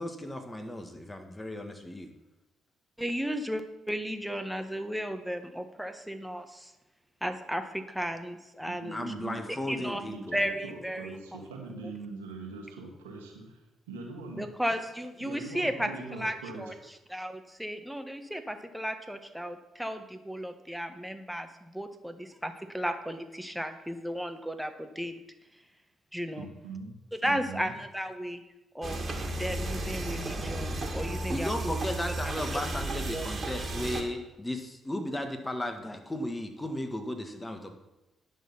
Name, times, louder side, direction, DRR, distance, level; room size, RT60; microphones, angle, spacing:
voice 1, 0.0-2.1 8.9-10.3 31.3-37.7, left 1 dB, 20° left, 5 dB, 1.8 m, -35 dB
voice 2, 3.0-6.7 7.2-9.0 9.5-10.0 10.3-11.1 14.4-15.9 16.2-16.7 17.1-22.1 22.4-25.2 26.1-26.5 27.2-28.4 28.7-29.0 29.3-31.7 32.7-32.8 33.1-33.3, equal, 5° right, 7 dB, 1.4 m, -34 dB
voice 3, 8.6-9.4 9.7-14.5 15.2-16.7 26.4-26.9 27.2-27.7, right 3 dB, 90° right, 0 dB, 1.8 m, -42 dB
sound 1, 28.8-34.0, right 2 dB, 40° right, 2.0 m, -34 dB
10.0 x 6.4 x 5.8 m, 0.99 s
hypercardioid pair, 45°, 0 cm